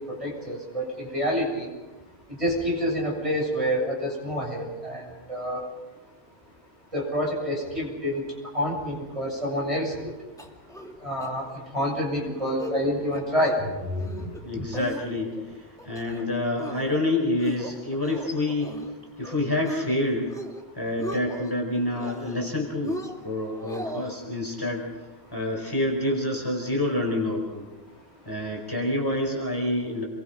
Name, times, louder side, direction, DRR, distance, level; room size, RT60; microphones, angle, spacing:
voice 1, 0.1-1.7 2.4-5.0 5.3-5.6 6.9-8.2 8.5-10.1 11.0-11.5 11.7-14.1 14.5-14.6, equal, 30° right, -2 dB, 7.5 m, -27 dB
sound 1, 10.4-10.9 11.2-11.3 11.7-11.9 12.3-12.8 13.1-13.6 14.0-14.4 14.7-15.4 15.8-16.3 16.6-17.0 17.4-18.9 19.2-19.9 20.2-20.6 20.9-21.5 21.9-22.5 22.8-24.2, equal, 5° left, 2.4 m, -37 dB
voice 2, 14.4-20.3 20.7-24.9 25.3-27.7 28.2-30.0, left 1 dB, 20° left, -1 dB, 4.8 m, -28 dB
28.0 x 23.0 x 5.2 m, 1.2 s
omnidirectional pair, 1.1 m